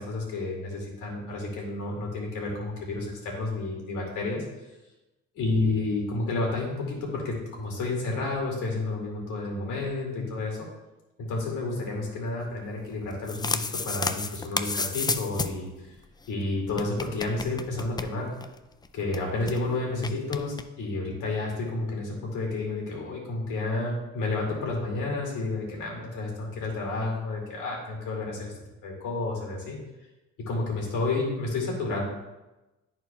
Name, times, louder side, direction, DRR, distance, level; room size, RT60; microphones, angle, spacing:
voice 1, 0.0-4.4 5.4-10.7 11.3-15.7 16.3-18.3 18.9-28.5 28.8-29.8 30.4-32.0, left 2 dB, 85° left, -1 dB, 2.3 m, -30 dB
sound 1, 13.0-15.7 16.0-16.1 16.2-16.3 16.7-18.6 18.8-18.9 19.1-19.6 20.0-20.6, left 4 dB, 15° left, 0.3 m, -31 dB
12.0 x 4.4 x 2.3 m, 1.1 s
cardioid pair, 90°, 30 cm